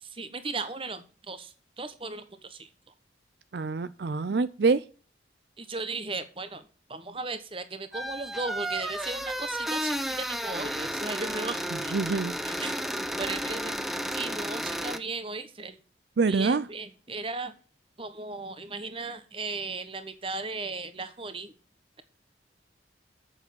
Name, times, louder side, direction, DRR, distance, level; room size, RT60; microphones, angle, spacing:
voice 1, 0.0-2.7 5.6-6.6 6.9-12.2 12.4-15.8 16.3-17.5 18.0-21.5, right 3 dB, 30° right, 1.2 m, -36 dB
voice 2, 3.5-4.8 11.9-12.3 16.2-16.6, right 4 dB, 60° right, 0.5 m, -25 dB
sound 1, 7.9-15.0, equal, ahead, 0.6 m, -32 dB
8.3 x 7.1 x 7.0 m
head